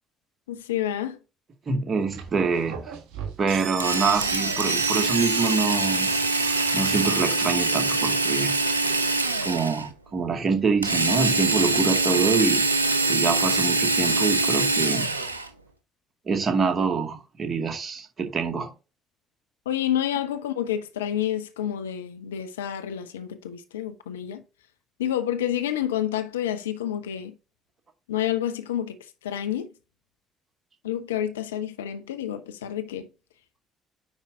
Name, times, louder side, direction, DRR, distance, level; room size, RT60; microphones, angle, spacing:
voice 1, 0.5-1.2 19.7-24.4 25.0-27.4 28.1-29.0 29.2-29.7 30.8-33.1, left 11 dB, 80° left, 0.6 m, -29 dB
voice 2, 1.7-2.9 3.4-6.2 6.7-8.6 9.4-12.6 13.1-15.1 16.3-18.7, right 5 dB, 40° right, 2.1 m, -25 dB
sound 1, 2.0-7.1, right 8 dB, 65° right, 1.4 m, -35 dB
Drill, 3.8-9.9 10.8-15.5, right 3 dB, 90° right, 0.5 m, -24 dB
9.5 x 4.6 x 2.7 m
figure-of-eight pair, 45°, 0 cm